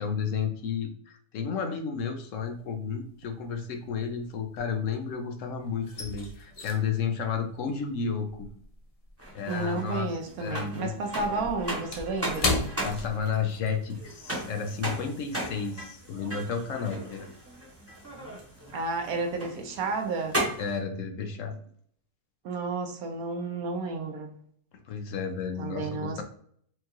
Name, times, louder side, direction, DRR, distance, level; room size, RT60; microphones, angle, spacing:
voice 1, 0.0-8.5 9.3-10.1 10.4-10.9 11.3-11.5 12.8-17.3 20.6-21.6 24.9-26.2, left 6 dB, 65° left, 6 dB, 0.8 m, -32 dB
sound 1, 2.4-2.9 3.2-5.2 5.5-10.2 10.4-13.8 14.1-14.3 14.7-15.0, left 2 dB, 50° left, 0.4 m, -35 dB
sound 2, 9.2-20.8, right 1 dB, 10° right, 0.9 m, -37 dB
voice 2, 9.5-12.6 18.7-20.4 22.4-24.3 25.6-26.2, right 3 dB, 70° right, 4 dB, 1.1 m, -32 dB
4.5 x 2.4 x 2.8 m, 0.62 s
omnidirectional pair, 1.7 m